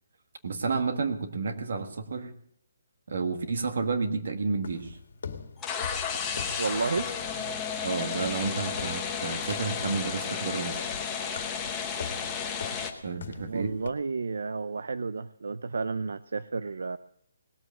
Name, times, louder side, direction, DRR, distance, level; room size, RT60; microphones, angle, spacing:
voice 1, 0.4-2.3 3.1-5.0 7.8-10.9 13.0-13.7, right 4 dB, 50° right, 9 dB, 1.6 m, -31 dB
sound 1, 4.6-13.9, left 5 dB, 50° left, 1.8 m, -43 dB
sound 2, 5.6-12.9, left 6 dB, 10° left, 0.9 m, -33 dB
voice 2, 6.6-7.1 13.5-17.0, right 4 dB, 70° right, 15 dB, 0.5 m, -31 dB
19.0 x 7.9 x 7.7 m, 0.70 s
hypercardioid pair, 180°, 0 cm